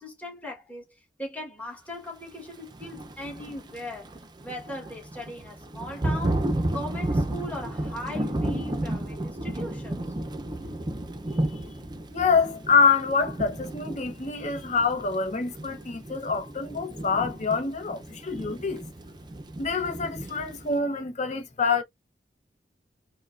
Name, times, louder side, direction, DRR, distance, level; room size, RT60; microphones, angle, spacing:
voice 1, 0.0-4.1 4.4-10.0, left 1 dB, 10° left, 1.2 m, -39 dB
Thunder / Rain, 2.7-20.8, right 1 dB, 25° right, 0.5 m, -33 dB
voice 2, 12.1-18.8 19.6-21.8, left 5 dB, 40° left, 0.8 m, -26 dB
4.4 x 2.1 x 2.4 m
head